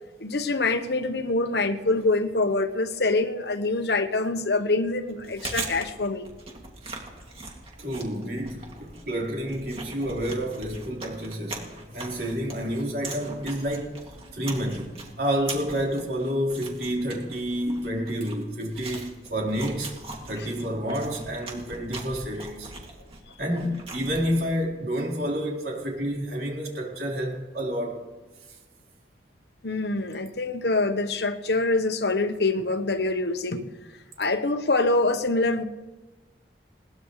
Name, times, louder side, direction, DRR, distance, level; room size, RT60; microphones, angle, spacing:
voice 1, 0.2-6.3 20.4-20.5 29.6-33.6 34.2-35.6, left 2 dB, 70° left, 8 dB, 1.1 m, -25 dB
Chewing mastication, 5.1-24.6, right 3 dB, 30° right, 2.4 m, -41 dB
voice 2, 7.8-14.0 14.3-19.9 20.2-22.7 23.4-28.0 28.5-28.6, equal, 60° right, -2 dB, 4.1 m, -29 dB
21.0 x 19.0 x 3.3 m, 1.2 s
head